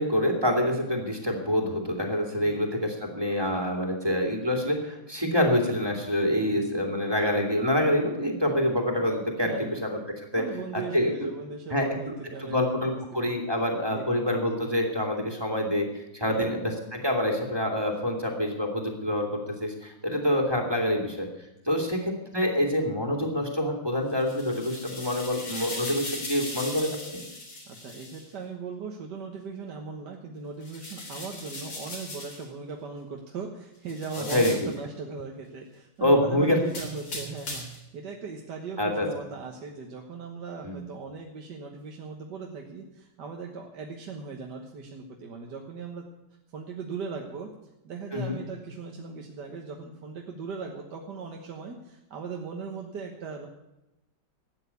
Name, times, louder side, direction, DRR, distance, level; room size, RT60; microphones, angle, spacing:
voice 1, 0.0-10.4 10.7-11.3 11.7-12.1 12.4-21.3 21.7-27.2 34.3-34.7 36.0-36.6 38.8-39.1 40.6-40.9 48.1-48.4, left 1 dB, 15° right, 2 dB, 2.4 m, -26 dB
voice 2, 6.3-6.7 9.5-10.1 10.3-13.3 13.9-14.1 16.3-16.6 21.7-21.9 27.7-46.1 46.5-47.5 47.8-53.5, right 5 dB, 65° right, 1 dB, 1.9 m, -39 dB
sound 1, 24.1-28.2 30.6-32.5 33.9-34.8 36.7-37.9, left 2 dB, 75° left, 4.2 m, -38 dB
14.0 x 9.2 x 8.3 m, 0.94 s
omnidirectional pair, 2.0 m